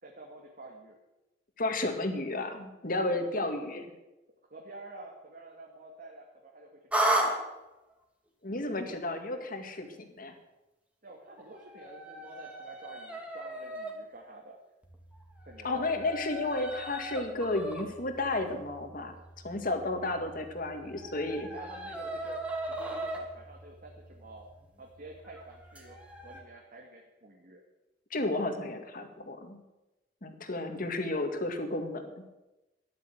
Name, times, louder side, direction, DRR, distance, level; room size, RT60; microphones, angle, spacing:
voice 1, 0.0-1.0 3.1-3.6 4.5-7.4 11.0-14.6 15.5-16.1 21.5-22.4 22.6-24.5 24.8-26.0 26.2-27.6, right 2 dB, 50° right, 0 dB, 2.2 m, -49 dB
voice 2, 1.6-3.9 8.4-10.4 15.6-19.2 19.4-21.5 28.1-29.6 30.2-32.3, left 2 dB, 50° left, 6 dB, 2.0 m, -32 dB
sound 1, 6.9-7.3 11.4-13.9 14.8-26.4, right 1 dB, 5° right, 2.4 m, -37 dB
13.5 x 11.0 x 7.9 m, 1.0 s
head